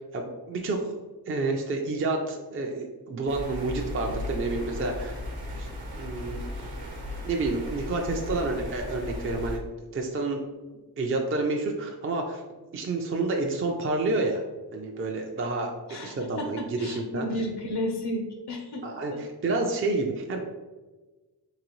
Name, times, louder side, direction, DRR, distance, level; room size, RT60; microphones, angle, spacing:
voice 1, 0.1-1.0 1.3-5.2 5.5-5.7 5.9-6.4 7.2-9.7 9.9-10.4 11.0-12.4 12.7-14.4 14.7-15.7 16.0-17.3 18.8-20.4, right 3 dB, 35° right, 1 dB, 0.4 m, -29 dB
sound 1, 3.3-9.6, left 1 dB, 65° right, 1.0 m, -36 dB
voice 2, 15.9-18.9 19.1-19.2, left 1 dB, 75° left, 3 dB, 0.6 m, -33 dB
3.8 x 3.0 x 3.0 m, 1.2 s
wide cardioid pair, 120°, 41 cm